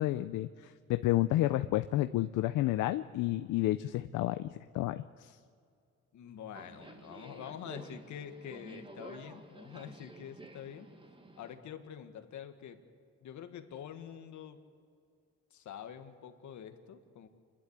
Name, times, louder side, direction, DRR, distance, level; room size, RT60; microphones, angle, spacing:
voice 1, 0.0-5.3, left 15 dB, 85° left, 11 dB, 0.6 m, -31 dB
voice 2, 6.1-10.9 11.3-12.8 13.2-14.6 15.5-17.3, left 8 dB, 70° left, 8 dB, 1.7 m, -46 dB
Subway metro underground, 6.5-11.6, right 2 dB, 15° right, 1.7 m, -51 dB
27.5 x 11.5 x 8.1 m, 2.3 s
cardioid pair, 90°, 30 cm